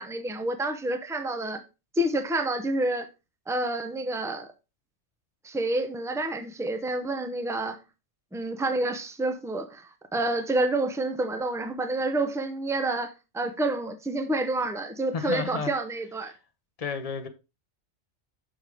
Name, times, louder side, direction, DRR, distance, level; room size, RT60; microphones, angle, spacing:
voice 1, 0.0-1.6 2.0-3.1 3.5-4.5 5.4-7.8 8.3-16.3, right 2 dB, 5° right, 0.3 m, -28 dB
voice 2, 15.1-15.7 16.8-17.3, left 5 dB, 35° left, 0.6 m, -31 dB
6.3 x 6.2 x 3.4 m
omnidirectional pair, 1.4 m